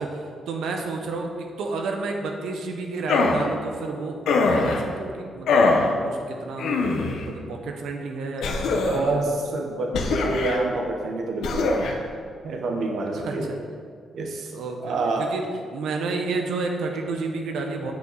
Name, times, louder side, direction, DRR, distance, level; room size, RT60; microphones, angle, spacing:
voice 1, 0.0-1.3 1.6-6.8 7.3-9.4 13.1-13.6 14.5-15.4 15.7-17.9, right 3 dB, 90° right, 3 dB, 1.0 m, -31 dB
sound 1, 3.1-3.5 4.3-4.8 5.5-5.9 6.6-7.2 8.4-9.1 9.9-10.6 11.4-11.9, left 3 dB, 80° left, 1.0 m, -22 dB
voice 2, 8.9-12.0 12.4-13.5 14.1-14.5 14.8-15.3, right 2 dB, 60° right, 2 dB, 0.9 m, -27 dB
8.6 x 8.0 x 4.0 m, 2.1 s
cardioid pair, 155°, 0 cm